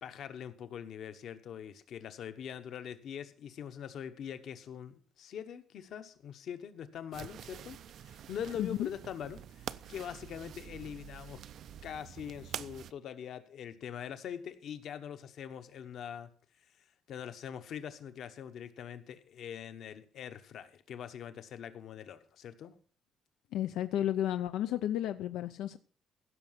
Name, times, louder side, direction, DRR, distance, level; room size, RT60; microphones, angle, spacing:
voice 1, 0.0-11.4 11.8-16.3 17.1-22.7, left 8 dB, 50° left, 10 dB, 1.1 m, -43 dB
sound 1, 7.1-12.9, right 9 dB, 50° right, 0.5 m, -46 dB
voice 2, 8.6-8.9 23.5-25.8, left 12 dB, 85° left, 10 dB, 0.6 m, -32 dB
16.0 x 6.4 x 5.8 m, 0.42 s
cardioid pair, 175°, 0 cm